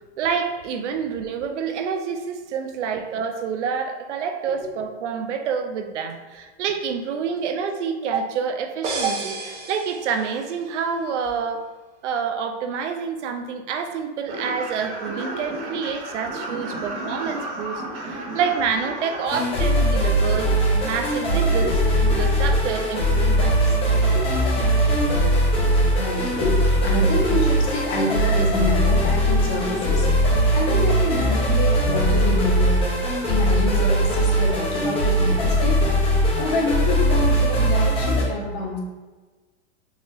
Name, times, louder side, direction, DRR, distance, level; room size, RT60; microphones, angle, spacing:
voice 1, 0.2-11.6 12.0-20.5 20.8-21.7 22.0-23.6, right 6 dB, 80° right, 6 dB, 0.6 m, -27 dB
voice 2, 4.5-4.8 5.3-5.4 18.5-18.7 19.4-19.6 20.0-20.2 21.6-21.8 23.9-24.7 25.9-32.8 33.3-35.8 36.4-38.8, left 3 dB, 45° left, 0 dB, 1.0 m, -27 dB
sound 1, 8.8-10.6, right 3 dB, 20° right, 0.5 m, -32 dB
sound 2, 14.3-19.3, right 2 dB, 55° right, 1.3 m, -32 dB
sound 3, 19.3-38.2, right 1 dB, 15° left, 1.0 m, -20 dB
4.1 x 2.9 x 2.7 m, 1.3 s
hypercardioid pair, 130°, 35 cm